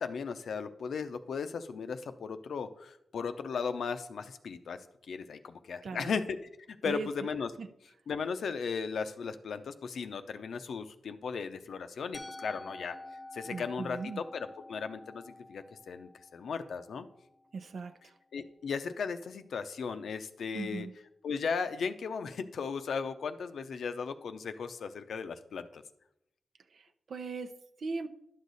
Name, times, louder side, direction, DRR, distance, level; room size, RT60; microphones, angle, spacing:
voice 1, 0.0-4.8 5.1-6.4 6.7-7.5 8.1-13.0 13.3-17.1 18.3-20.9 21.2-25.8, left 5 dB, 90° left, 10 dB, 0.6 m, -36 dB
voice 2, 5.8-6.2 6.8-7.3 7.6-7.7 13.4-14.2 17.5-18.1 20.5-20.9 26.7-28.1, right 4 dB, 70° right, 10 dB, 0.7 m, -39 dB
Musical instrument, 12.1-18.0, left 2 dB, 15° left, 0.6 m, -49 dB
11.0 x 6.5 x 4.0 m, 0.82 s
wide cardioid pair, 100°, 0 cm